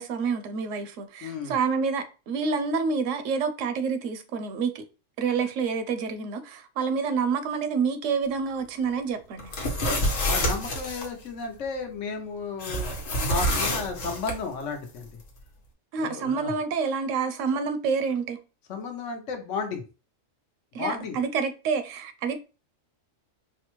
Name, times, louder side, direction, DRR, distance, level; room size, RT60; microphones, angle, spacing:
voice 1, 0.0-4.8 5.2-9.5 15.9-18.4 20.7-22.4, right 5 dB, 75° right, 0.9 m, -28 dB
voice 2, 1.2-1.5 10.3-15.1 16.0-16.5 18.7-19.8 20.8-21.2, left 4 dB, 70° left, 1.1 m, -33 dB
sound 1, 9.4-11.1 12.6-14.4, equal, 90° left, 1.3 m, -27 dB
4.7 x 2.2 x 3.0 m
omnidirectional pair, 1.3 m